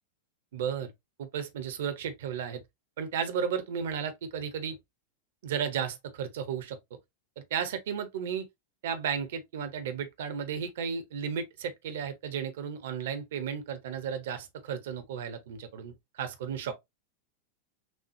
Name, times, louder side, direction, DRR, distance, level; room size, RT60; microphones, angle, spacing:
voice 1, 0.5-0.9 1.2-2.6 3.0-4.8 5.4-6.8 7.4-8.5 8.8-16.7, right 7 dB, 55° right, 0.9 m, -34 dB
6.3 x 2.3 x 2.9 m
figure-of-eight pair, 90°, 0 cm